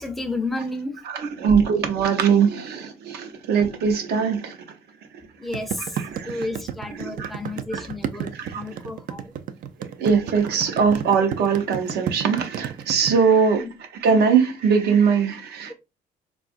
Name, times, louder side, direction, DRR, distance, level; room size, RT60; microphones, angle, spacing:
voice 1, 0.0-1.0 5.4-9.3 13.6-13.7, left 2 dB, ahead, 0.6 m, -32 dB
voice 2, 1.1-4.6 6.0-6.4 6.9-7.3 7.7-7.8 8.3-8.6 9.8-15.7, right 6 dB, 75° right, 0.8 m, -21 dB
sound 1, 5.5-13.1, right 9 dB, 55° right, 0.4 m, -31 dB
3.7 x 2.4 x 2.4 m
cardioid pair, 110°, 17 cm